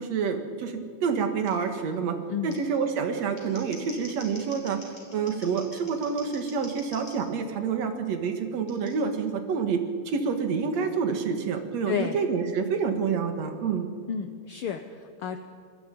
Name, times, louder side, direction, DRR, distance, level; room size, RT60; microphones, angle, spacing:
voice 1, 0.0-2.2 2.4-13.9, right 6 dB, 65° right, 6 dB, 2.8 m, -28 dB
Scissors, 1.5-1.6 2.5-2.6 3.2-7.2 8.7-8.9, left 1 dB, 15° left, 5.6 m, -46 dB
voice 2, 11.9-12.2 14.1-15.4, left 8 dB, 70° left, 8 dB, 1.4 m, -31 dB
26.0 x 20.0 x 5.3 m, 2.2 s
omnidirectional pair, 3.3 m